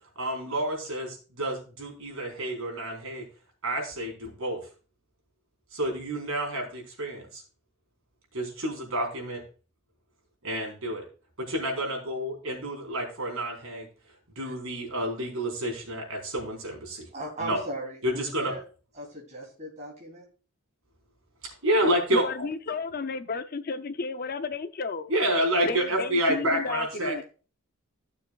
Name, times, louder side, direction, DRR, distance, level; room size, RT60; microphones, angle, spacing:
voice 1, 0.2-3.2 3.6-4.6 5.7-7.4 8.3-9.4 10.4-11.0 11.4-13.9 14.4-17.0 17.4-17.6 18.0-18.5 21.6-22.2 25.1-27.1, right 1 dB, 80° right, 4.3 m, -29 dB
voice 2, 17.1-18.6 18.9-20.2, right 1 dB, 35° right, 3.3 m, -38 dB
voice 3, 22.1-25.1 25.6-27.2, left 4 dB, 45° left, 0.5 m, -32 dB
15.5 x 6.9 x 2.4 m
head